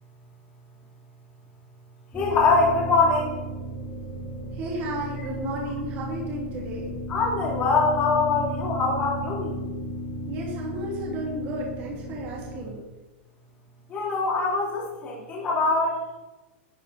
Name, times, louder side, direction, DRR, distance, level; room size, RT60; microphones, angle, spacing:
voice 1, 2.1-3.4 7.1-9.7 13.9-16.2, left 3 dB, 20° left, -4 dB, 3.0 m, -23 dB
sound 1, 2.1-12.7, right 1 dB, ahead, 2.1 m, -34 dB
voice 2, 4.5-6.9 10.2-12.8, right 1 dB, 30° right, -3 dB, 2.9 m, -33 dB
12.0 x 9.2 x 4.4 m, 1.1 s
supercardioid pair, 175°, 7 cm